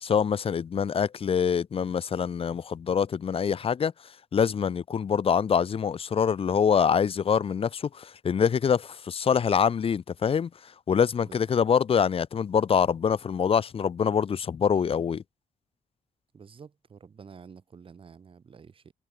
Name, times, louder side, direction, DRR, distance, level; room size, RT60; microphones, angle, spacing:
voice 1, 0.0-3.9 4.3-10.5 10.9-15.2, left 7 dB, 40° left, 1.5 m, -25 dB
voice 2, 11.2-11.6 16.3-18.9, right 6 dB, 35° right, 6.9 m, -49 dB
cardioid pair, 150°, 15 cm